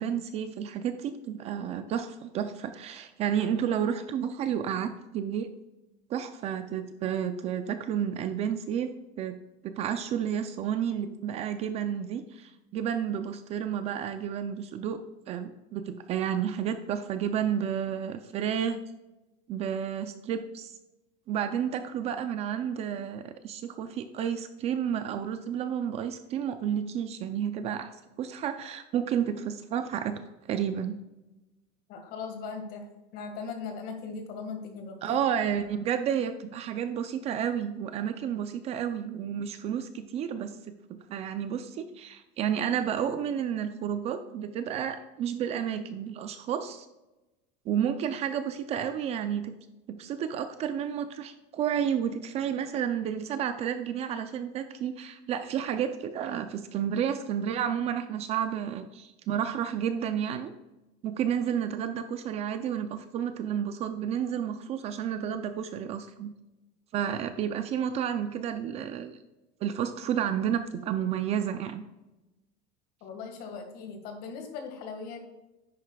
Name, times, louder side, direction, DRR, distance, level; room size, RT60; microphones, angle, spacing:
voice 1, 0.0-5.5 6.1-9.4 9.6-15.0 15.3-18.8 19.5-20.7 21.3-27.9 28.2-30.2 30.5-31.0 35.0-46.9 47.7-49.5 49.9-60.5 61.0-66.3 66.9-69.2 69.6-71.8, right 8 dB, 30° right, 9 dB, 0.4 m, -31 dB
voice 2, 31.9-32.9 33.1-35.2 73.0-75.2, left 5 dB, 50° left, 4 dB, 1.8 m, -39 dB
10.5 x 8.1 x 2.3 m, 1.0 s
cardioid pair, 175°, 21 cm